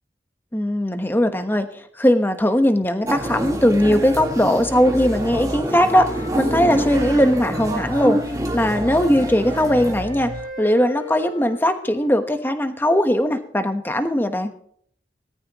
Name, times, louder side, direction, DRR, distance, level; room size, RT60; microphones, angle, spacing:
voice 1, 0.5-8.2 8.5-10.3 10.6-14.5, equal, 10° left, 8 dB, 1.2 m, -19 dB
sound 1, 3.1-10.0, right 1 dB, 20° right, 1.9 m, -27 dB
sound 2, 3.2-10.4, equal, 35° right, 2.9 m, -35 dB
Wind instrument woodwind instrument, 4.9-8.5 8.9-12.5, left 1 dB, 30° left, 4.0 m, -38 dB
18.5 x 13.5 x 3.0 m, 0.63 s
head